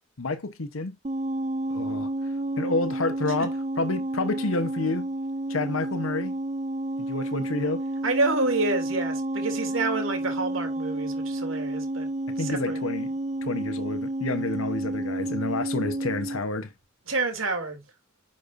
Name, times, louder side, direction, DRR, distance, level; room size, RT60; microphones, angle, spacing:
voice 1, 0.2-0.9 1.7-2.1 2.6-5.1 5.5-6.4 7.0-7.8 12.4-13.1 13.4-16.7, left 3 dB, 85° left, 1.0 m, -29 dB
sound 1, 1.0-16.4, right 1 dB, 35° right, 0.6 m, -30 dB
voice 2, 8.0-12.1 12.4-12.8 17.1-17.8, right 3 dB, 80° right, 3.1 m, -28 dB
10.5 x 5.3 x 2.6 m
head